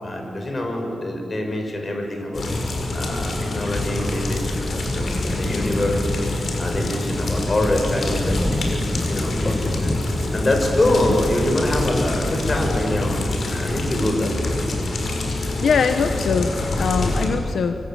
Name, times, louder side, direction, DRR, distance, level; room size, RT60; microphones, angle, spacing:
voice 1, 0.0-2.4 2.9-6.2 6.6-9.9 10.3-14.6, left 1 dB, 35° left, 3 dB, 6.4 m, -25 dB
sound 1, 2.3-17.3, left 2 dB, 60° left, 6.0 m, -26 dB
Thunder, 5.0-14.6, left 1 dB, 10° left, 1.7 m, -30 dB
voice 2, 15.6-17.8, left 5 dB, 80° left, 7 dB, 1.2 m, -22 dB
26.0 x 24.5 x 9.3 m, 2.4 s
wide cardioid pair, 100°, 0 cm